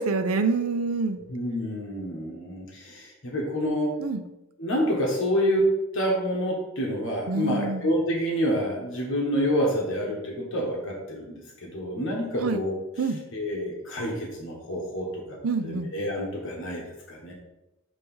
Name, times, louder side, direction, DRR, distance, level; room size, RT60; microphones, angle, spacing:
voice 1, 0.0-1.2 4.0-4.2 7.3-7.9 12.4-12.6 13.0-13.2 15.4-15.9, right 4 dB, 75° right, 8 dB, 0.6 m, -26 dB
voice 2, 1.3-4.0 4.6-5.7 5.9-12.7 13.3-15.4 15.6-17.3, equal, 60° left, -2 dB, 1.3 m, -28 dB
6.6 x 3.1 x 5.4 m, 0.97 s
head